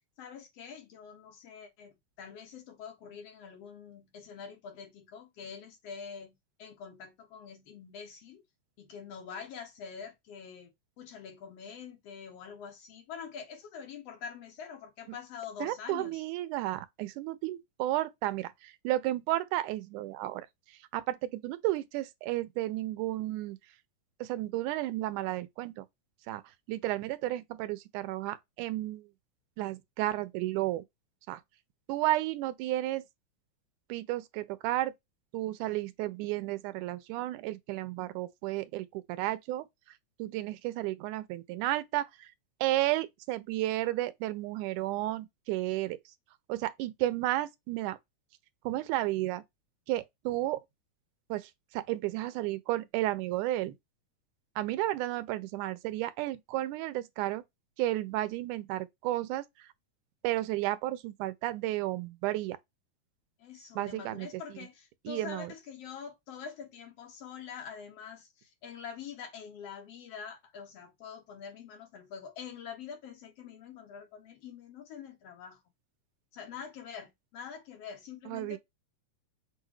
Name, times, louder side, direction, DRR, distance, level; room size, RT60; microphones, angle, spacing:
voice 1, 0.2-8.4 8.8-10.7 11.0-16.2 63.4-75.6 76.3-78.6, left 7 dB, 65° left, 1.7 m, -45 dB
voice 2, 15.6-20.5 20.9-23.6 24.2-25.9 26.3-26.4 26.7-29.0 29.6-30.8 31.3-31.4 31.9-33.1 33.9-34.9 35.3-39.7 40.2-42.3 42.6-46.0 46.5-48.0 48.7-49.4 49.9-50.6 51.3-53.8 54.6-57.4 57.8-59.5 60.2-62.6 63.8-64.3 65.1-65.5 78.3-78.6, right 16 dB, 90° right, 2.1 m, -32 dB
6.1 x 2.3 x 3.1 m
omnidirectional pair, 3.4 m